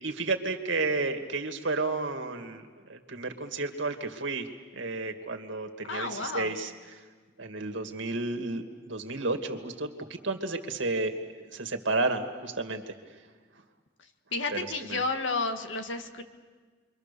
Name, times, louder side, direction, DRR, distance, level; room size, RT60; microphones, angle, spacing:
voice 1, 0.0-7.0 7.4-11.1 11.5-12.9 14.5-15.0, right 3 dB, 80° right, 5 dB, 2.2 m, -32 dB
voice 2, 5.9-6.5 14.3-16.2, left 3 dB, 85° left, 6 dB, 1.9 m, -31 dB
30.0 x 23.5 x 6.9 m, 1.5 s
head